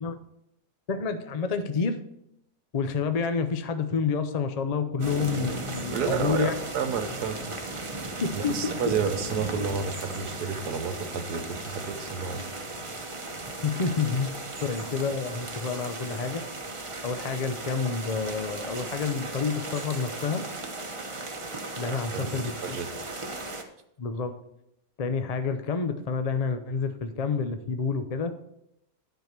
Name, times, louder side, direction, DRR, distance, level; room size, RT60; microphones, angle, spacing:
voice 1, 0.9-2.0 2.7-6.5 8.2-8.7 13.6-14.3 14.6-16.4 17.0-20.4 21.8-22.5 24.0-24.3 25.0-28.3, left 5 dB, 55° left, 8 dB, 0.4 m, -28 dB
sound 1, 5.0-23.6, right 2 dB, 25° right, 0.8 m, -36 dB
voice 2, 5.9-7.5 8.3-12.7 14.6-14.7 21.9-22.9, right 6 dB, 90° right, 8 dB, 1.5 m, -31 dB
10.5 x 4.6 x 6.6 m, 0.80 s
omnidirectional pair, 1.6 m